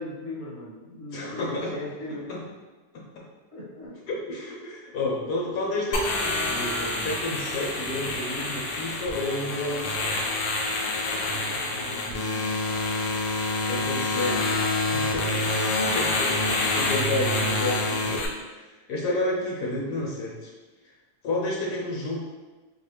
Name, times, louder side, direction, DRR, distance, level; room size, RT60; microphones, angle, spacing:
voice 1, 0.0-2.3 3.5-4.0 11.1-12.6 14.3-14.4 15.6-16.1, left 1 dB, 25° left, -6 dB, 0.9 m, -39 dB
voice 2, 1.1-1.8 2.3-2.4 2.9-3.2 4.1-10.2 13.7-14.6 14.9-15.5 15.9-18.3 18.9-20.5 21.2-22.2, left 2 dB, 85° left, -4 dB, 1.4 m, -30 dB
sound 1, 5.9-18.3, left 2 dB, 70° left, 1.0 m, -27 dB
3.9 x 2.3 x 3.3 m, 1.2 s
omnidirectional pair, 1.7 m